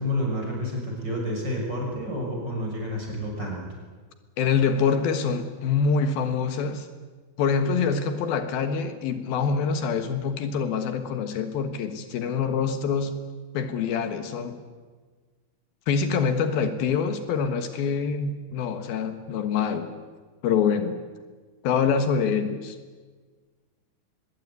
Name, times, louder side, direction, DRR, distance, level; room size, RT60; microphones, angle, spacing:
voice 1, 0.0-3.6, left 1 dB, 25° right, -1 dB, 6.8 m, -29 dB
voice 2, 4.4-6.9 7.4-13.2 13.5-14.6 15.9-19.9 20.4-21.0 21.6-22.8, left 6 dB, 80° left, 9 dB, 3.3 m, -25 dB
23.5 x 22.0 x 9.6 m, 1.4 s
omnidirectional pair, 4.2 m